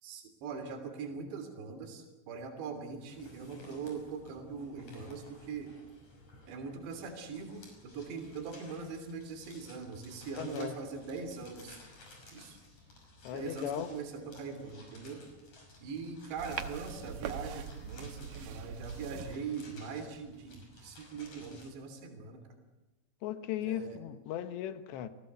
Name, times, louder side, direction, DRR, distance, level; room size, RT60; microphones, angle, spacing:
voice 1, 0.0-5.7 6.5-11.8 12.3-12.6 13.3-15.2 15.8-22.4 23.6-24.0, right 5 dB, 85° right, 6 dB, 5.2 m, -41 dB
sound 1, 3.0-21.7, left 2 dB, 40° left, 7.1 m, -56 dB
voice 2, 10.4-10.8 13.2-13.9 23.2-25.1, left 11 dB, 85° left, 10 dB, 3.5 m, -37 dB
sound 2, 16.4-19.4, right 8 dB, 65° right, 2.6 m, -42 dB
29.5 x 18.5 x 8.0 m, 1.1 s
omnidirectional pair, 4.9 m